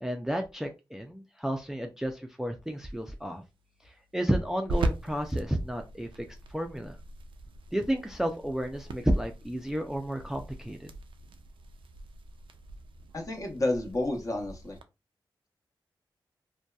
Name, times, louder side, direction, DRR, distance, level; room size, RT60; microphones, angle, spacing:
voice 1, 0.0-3.4 3.8-7.0 7.7-10.9, equal, 5° right, 5 dB, 0.4 m, -32 dB
sound 1, 2.6-14.8, right 2 dB, 85° right, 0.3 m, -40 dB
voice 2, 13.1-14.8, left 2 dB, 40° left, 1 dB, 0.9 m, -30 dB
2.7 x 2.2 x 2.3 m, 0.26 s
cardioid pair, 55°, 9 cm